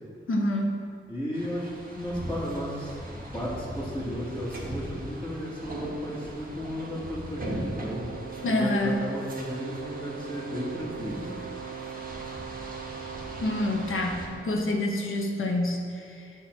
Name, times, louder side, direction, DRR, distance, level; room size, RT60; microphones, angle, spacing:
voice 1, 0.3-0.9 8.4-9.0 13.4-16.3, left 1 dB, 80° left, 1 dB, 1.2 m, -27 dB
voice 2, 1.1-8.1 8.4-11.4, equal, 10° left, -10 dB, 1.8 m, -34 dB
sound 1, 1.3-14.3, right 1 dB, 45° right, 1.4 m, -40 dB
Wind instrument woodwind instrument, 7.3-14.7, right 9 dB, 70° right, 0.5 m, -41 dB
10.0 x 4.2 x 7.5 m, 2.3 s
wide cardioid pair, 125°, 21 cm